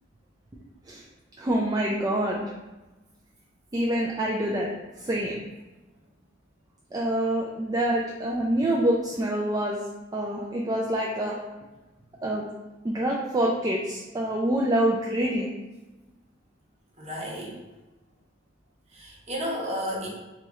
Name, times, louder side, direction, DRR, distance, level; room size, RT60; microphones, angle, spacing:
voice 1, 1.4-2.4 3.7-4.7 5.0-5.4 6.9-9.8 10.1-11.4 12.2-12.4 12.8-15.5, right 1 dB, 20° right, -2 dB, 0.3 m, -26 dB
voice 2, 17.0-17.6 18.9-20.1, equal, 35° right, -3 dB, 0.9 m, -32 dB
3.0 x 3.0 x 3.5 m, 1.1 s
head